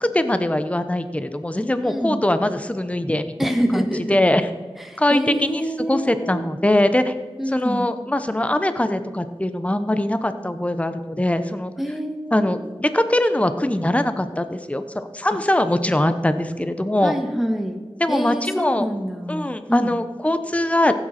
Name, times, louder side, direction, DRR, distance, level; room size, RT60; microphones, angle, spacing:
voice 1, 0.0-4.5 5.0-5.6 5.9-7.1 7.5-11.7 12.3-17.1 18.0-18.9 19.3-20.9, left 1 dB, 15° left, 10 dB, 0.8 m, -22 dB
voice 2, 1.8-2.2 3.4-4.2 4.8-6.4 7.4-7.8 11.8-12.5 17.0-17.8 18.1-20.0, equal, ahead, 3 dB, 1.5 m, -26 dB
15.5 x 8.9 x 4.3 m, 1.4 s
wide cardioid pair, 50°, 10 cm